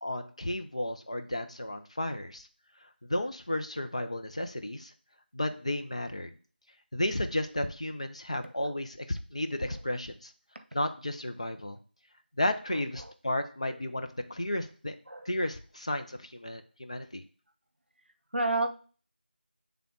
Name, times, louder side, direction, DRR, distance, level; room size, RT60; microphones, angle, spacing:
voice 1, 0.0-2.5 2.8-4.9 5.3-6.3 6.9-10.3 10.7-11.8 12.4-14.9 15.2-17.2, left 1 dB, 35° left, 6 dB, 0.5 m, -33 dB
voice 2, 12.7-13.1 13.6-13.7 15.1-15.3 18.3-18.7, right 2 dB, 75° right, 8 dB, 0.8 m, -32 dB
7.5 x 3.4 x 3.7 m, 0.39 s
figure-of-eight pair, 170°, 6 cm